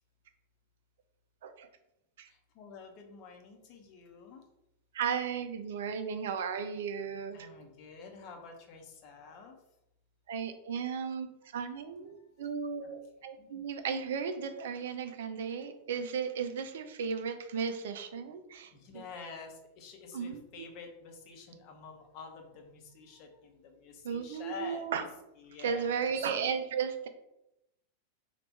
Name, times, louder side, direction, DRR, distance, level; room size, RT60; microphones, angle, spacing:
voice 1, 2.3-4.4 7.3-9.6 11.6-11.8 12.1-12.5 12.8-12.9 13.2-13.5 18.7-24.9 25.4-26.1, left 5 dB, 40° left, 3 dB, 0.8 m, -49 dB
voice 2, 4.9-7.4 10.3-11.3 11.5-18.7 20.1-20.6 24.0-25.0 25.6-27.1, right 6 dB, 60° right, 8 dB, 0.4 m, -35 dB
3.4 x 2.4 x 4.3 m, 0.87 s
figure-of-eight pair, 90°, 0 cm